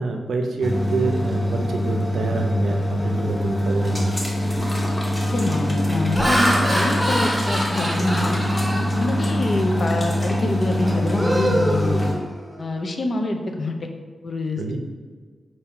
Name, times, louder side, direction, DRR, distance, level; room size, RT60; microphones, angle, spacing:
voice 1, 0.0-4.1 14.6-14.8, right 3 dB, 85° right, 3 dB, 0.5 m, -26 dB
sound 1, 0.6-12.1, equal, 30° left, 1.0 m, -24 dB
Laughter, 4.2-4.3 4.9-5.2 5.8-9.6 10.1-10.3 10.7-12.6, equal, ahead, 0.8 m, -26 dB
voice 2, 5.3-8.4 8.9-12.1 12.6-13.8 14.2-14.6, left 2 dB, 55° left, 4 dB, 0.5 m, -26 dB
4.5 x 2.6 x 3.6 m, 1.5 s
cardioid pair, 60°, 0 cm